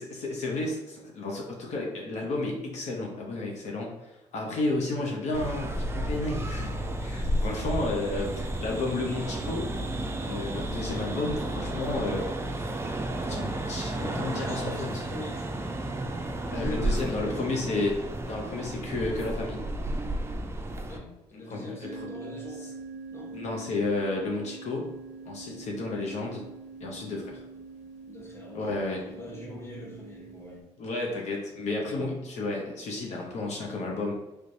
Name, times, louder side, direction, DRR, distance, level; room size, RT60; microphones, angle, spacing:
voice 1, 0.0-9.7 10.2-12.3 13.3-15.0 16.5-19.6 21.5-21.9 23.3-24.9 25.3-26.4 26.8-27.4 28.5-29.0 30.8-34.1, left 2 dB, 70° left, -1 dB, 0.7 m, -32 dB
sound 1, 5.3-21.0, right 1 dB, 20° right, 0.4 m, -32 dB
voice 2, 14.0-15.7 16.4-17.6 20.8-22.7 23.1-23.4 26.0-26.3 28.1-30.6, left 1 dB, 20° left, -3 dB, 1.0 m, -43 dB
sound 2, 21.8-30.6, right 4 dB, 80° right, 0.5 m, -44 dB
3.2 x 3.2 x 2.6 m, 0.98 s
cardioid pair, 85°, 12 cm